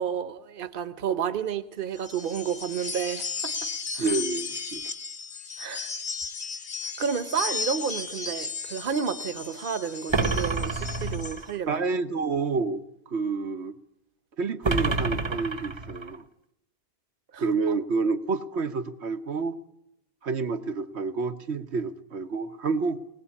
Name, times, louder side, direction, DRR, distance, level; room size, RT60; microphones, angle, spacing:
voice 1, 0.0-3.5 3.9-4.1 5.6-5.9 7.0-11.8 17.3-17.7, right 7 dB, 55° right, 11 dB, 1.1 m, -31 dB
sound 1, 2.0-11.4, left 4 dB, 90° left, 2.0 m, -35 dB
voice 2, 4.0-4.8 11.7-13.8 14.4-16.2 17.4-19.6 20.2-23.0, right 4 dB, 85° right, 8 dB, 1.4 m, -29 dB
sound 2, 10.1-11.6 14.6-16.2, right 3 dB, 30° right, 0.9 m, -28 dB
19.5 x 19.5 x 8.5 m, 0.81 s
omnidirectional pair, 1.1 m